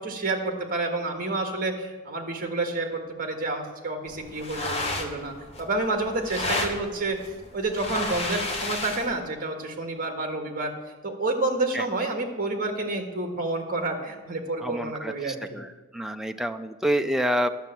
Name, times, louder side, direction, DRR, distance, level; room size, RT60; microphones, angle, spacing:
voice 1, 0.0-7.2 7.5-10.7 11.0-15.6, right 2 dB, 40° right, 4 dB, 1.6 m, -29 dB
sound 1, 4.1-9.2, left 2 dB, 30° left, 1.2 m, -32 dB
voice 2, 14.6-17.5, equal, ahead, 7 dB, 0.4 m, -28 dB
11.5 x 6.8 x 7.5 m, 1.3 s
head